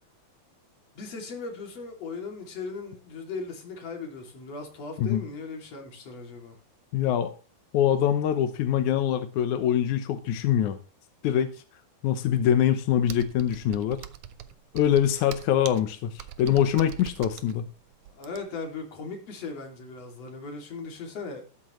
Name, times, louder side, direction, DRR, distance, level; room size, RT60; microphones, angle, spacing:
voice 1, 1.0-6.6 18.2-21.5, left 4 dB, 45° left, 3.6 m, -38 dB
voice 2, 6.9-7.3 7.7-10.8 11.2-11.5 12.0-14.0 14.7-17.7, left 10 dB, 75° left, 1.8 m, -24 dB
Computer keyboard, 13.1-18.7, right 11 dB, 80° right, 1.8 m, -43 dB
13.5 x 13.0 x 3.2 m
omnidirectional pair, 4.6 m